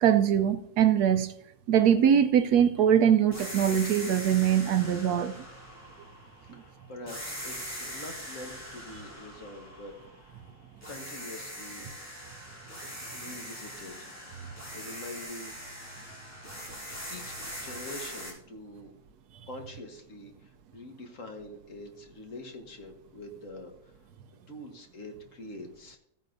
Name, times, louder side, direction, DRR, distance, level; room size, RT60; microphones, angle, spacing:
voice 1, 0.0-1.3 1.7-5.3, right 9 dB, 70° right, 9 dB, 1.1 m, -22 dB
sound 1, 3.3-6.6 7.1-10.4 10.8-18.3, equal, 10° left, 3.0 m, -42 dB
voice 2, 6.5-10.4 10.9-11.8 12.5-12.6 13.1-14.2 14.7-16.0 17.1-18.9 19.5-23.9 24.5-26.0, left 1 dB, 50° left, 3 dB, 1.6 m, -45 dB
15.0 x 9.4 x 2.6 m, 0.76 s
omnidirectional pair, 1.8 m